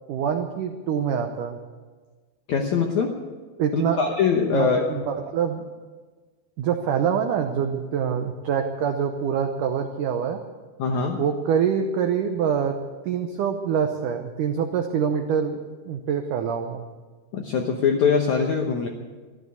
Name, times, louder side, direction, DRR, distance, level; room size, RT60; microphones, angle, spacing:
voice 1, 0.1-1.6 3.6-4.0 4.5-5.6 6.6-10.4 11.2-12.8 13.0-16.8, right 7 dB, 85° right, 5 dB, 1.8 m, -25 dB
voice 2, 2.5-3.1 3.7-4.8 10.8-11.2 17.3-18.9, left 5 dB, 80° left, 2 dB, 1.7 m, -22 dB
14.0 x 12.5 x 8.3 m, 1.4 s
omnidirectional pair, 5.0 m